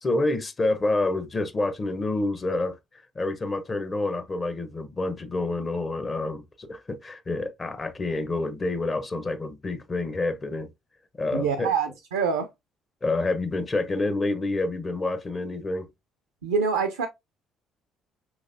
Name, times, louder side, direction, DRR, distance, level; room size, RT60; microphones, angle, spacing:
voice 1, 0.0-2.8 3.1-10.7 11.2-11.7 13.0-15.9, left 2 dB, 35° left, 0.9 m, -28 dB
voice 2, 11.3-12.5 16.4-17.1, right 6 dB, 80° right, 0.5 m, -25 dB
5.1 x 3.1 x 2.6 m
figure-of-eight pair, 50°, 0 cm